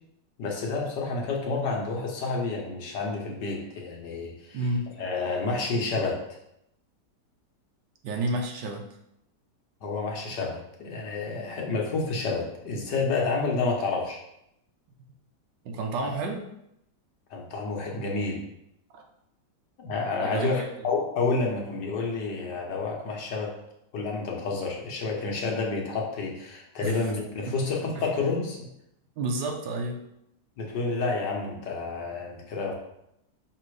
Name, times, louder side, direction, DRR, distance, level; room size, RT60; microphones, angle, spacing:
voice 1, 0.4-4.7 5.0-6.2 9.8-14.2 16.0-16.1 17.3-18.4 19.8-23.5 23.9-28.7 30.6-32.7, left 3 dB, 75° left, 0 dB, 1.7 m, -29 dB
voice 2, 4.5-4.9 8.0-8.8 15.6-16.4 18.9-19.0 20.2-20.7 26.8-27.1 27.4-27.5 28.0-28.1 29.2-30.0, right 2 dB, 85° right, 2 dB, 1.5 m, -30 dB
6.0 x 3.3 x 4.7 m, 0.79 s
omnidirectional pair, 1.9 m